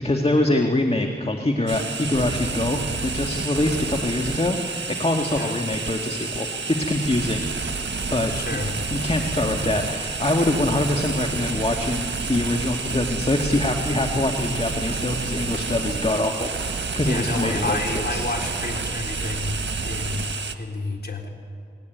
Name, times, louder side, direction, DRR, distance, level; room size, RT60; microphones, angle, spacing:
voice 1, 0.0-7.5 8.1-8.3 8.9-16.5 17.0-18.2, left 1 dB, 35° left, 3 dB, 2.1 m, -24 dB
sound 1, 1.7-20.6, right 4 dB, 90° right, 1.5 m, -29 dB
voice 2, 8.3-8.8 17.1-20.3 20.6-21.3, left 2 dB, 60° left, 1 dB, 3.9 m, -30 dB
29.0 x 20.5 x 9.4 m, 2.4 s
cardioid pair, 40°, 18 cm